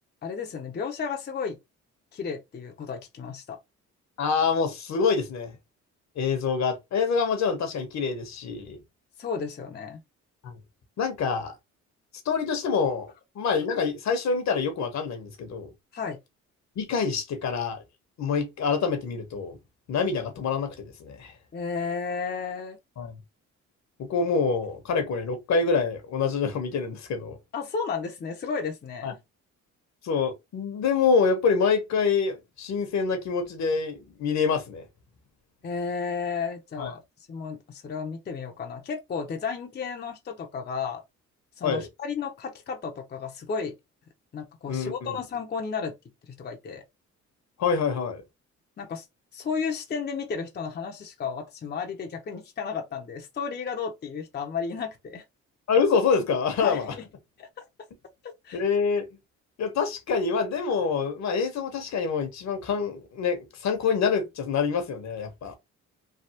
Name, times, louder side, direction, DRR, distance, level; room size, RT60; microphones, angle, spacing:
voice 1, 0.2-1.6 2.1-3.6 9.2-10.0 15.9-16.2 21.5-22.8 27.5-29.2 35.6-37.0 37.3-41.0 41.6-43.7 44.3-45.9 46.3-46.8 48.8-49.1 49.3-55.2 56.6-57.1 57.4-57.6 58.2-58.6, left 5 dB, 35° left, 0.7 m, -33 dB
voice 2, 4.2-5.5 6.2-8.8 10.4-10.5 11.0-11.5 12.2-15.7 16.8-17.8 18.2-19.5 19.9-21.3 23.0-23.2 24.0-27.4 29.0-29.1 30.0-34.8 36.8-36.9 41.6-41.9 44.7-45.1 47.6-48.2 55.7-56.9 58.5-59.0 59.6-65.5, left 5 dB, 65° left, 1.0 m, -26 dB
3.3 x 2.3 x 2.8 m
cardioid pair, 90°, 30 cm